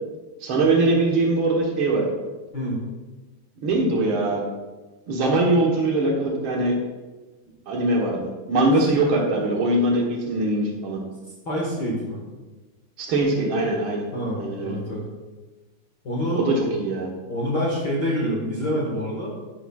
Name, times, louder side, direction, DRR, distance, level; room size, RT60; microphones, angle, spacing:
voice 1, 0.4-2.0 3.6-4.4 5.1-6.7 7.7-11.0 13.0-14.1 14.3-14.8 16.3-17.1, right 2 dB, 70° right, -1 dB, 1.2 m, -22 dB
voice 2, 11.4-12.2 14.1-15.0 16.0-16.5 17.3-19.3, equal, 50° left, -4 dB, 1.2 m, -26 dB
11.0 x 10.0 x 2.4 m, 1.2 s
omnidirectional pair, 4.3 m